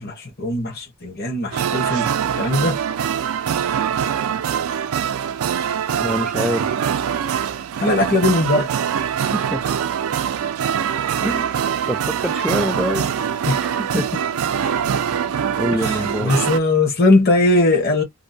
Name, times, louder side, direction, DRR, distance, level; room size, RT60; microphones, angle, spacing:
voice 1, 0.0-2.8 7.8-8.7 13.5-13.6 15.7-18.0, left 2 dB, 45° left, 1.0 m, -19 dB
sound 1, 1.5-16.6, right 8 dB, 85° right, 0.4 m, -23 dB
voice 2, 6.0-6.7 9.2-9.7 10.9-13.1 13.6-14.1 15.6-16.3, equal, ahead, 0.3 m, -26 dB
2.6 x 2.1 x 2.6 m
head